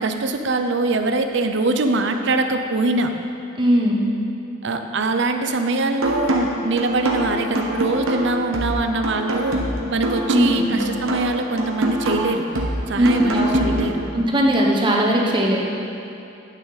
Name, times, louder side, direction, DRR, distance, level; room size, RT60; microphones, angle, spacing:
voice 1, 0.0-3.1 4.6-9.6 9.9-12.5 12.9-14.0, right 3 dB, 55° right, 6 dB, 0.6 m, -23 dB
voice 2, 3.6-4.1 10.3-10.7 13.0-13.6 14.1-15.6, right 1 dB, 25° right, -1 dB, 1.1 m, -18 dB
sound 1, 6.0-14.0, right 1 dB, 85° right, 1.3 m, -25 dB
9.7 x 9.1 x 4.1 m, 2.7 s
head